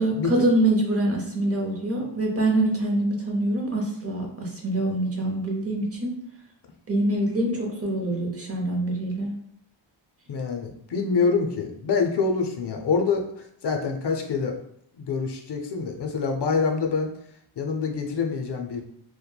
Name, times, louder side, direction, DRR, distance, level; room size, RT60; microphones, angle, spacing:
voice 1, 0.0-6.1 6.9-9.3, right 1 dB, 30° right, 1 dB, 0.7 m, -25 dB
voice 2, 10.3-14.6 15.0-17.1 17.6-18.8, left 5 dB, 60° left, 4 dB, 0.5 m, -26 dB
2.9 x 2.2 x 2.2 m, 0.70 s
wide cardioid pair, 80°, 46 cm